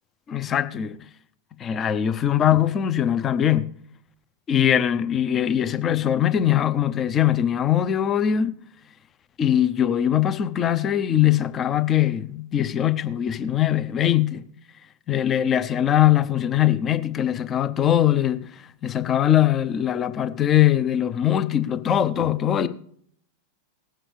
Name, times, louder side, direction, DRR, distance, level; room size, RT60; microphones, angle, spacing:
voice 1, 0.3-1.0 1.6-3.7 4.5-8.6 9.4-14.4 15.1-18.5 18.8-22.7, left 11 dB, 25° left, 0.7 m, -21 dB
19.5 x 7.5 x 3.3 m
figure-of-eight pair, 90°, 0 cm